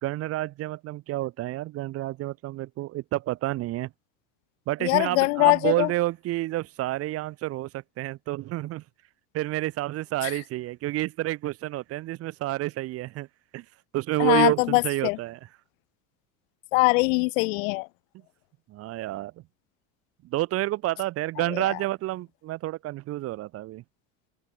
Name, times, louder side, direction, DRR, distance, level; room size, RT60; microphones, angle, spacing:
voice 1, 0.0-3.9 4.7-8.8 9.3-13.3 13.5-13.6 13.9-15.4 18.7-19.3 20.2-23.8, right 16 dB, 35° right, 0.5 m, -29 dB
voice 2, 4.8-5.9 10.2-10.3 14.2-15.2 16.7-17.9 21.5-21.8, left 28 dB, 80° left, 0.8 m, -22 dB
open air
supercardioid pair, 130°, 39 cm